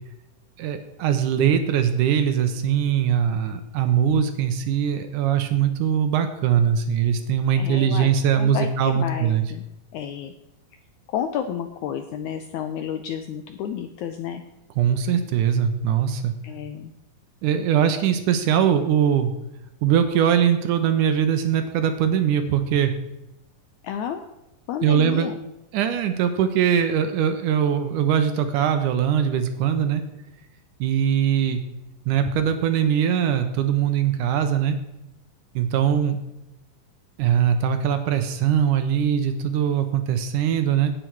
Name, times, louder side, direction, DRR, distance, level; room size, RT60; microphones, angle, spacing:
voice 1, 0.6-9.5 14.8-16.3 17.4-19.3 19.8-22.9 24.8-25.3 25.7-30.0 30.8-31.6 32.1-34.8 35.6-36.2 37.2-40.9, right 8 dB, 75° right, 8 dB, 2.1 m, -21 dB
voice 2, 7.6-9.6 9.9-10.3 11.1-14.4 16.4-16.9 23.8-24.2 24.7-25.3, left 9 dB, 80° left, 7 dB, 1.7 m, -31 dB
10.5 x 9.0 x 4.6 m, 0.92 s
omnidirectional pair, 4.0 m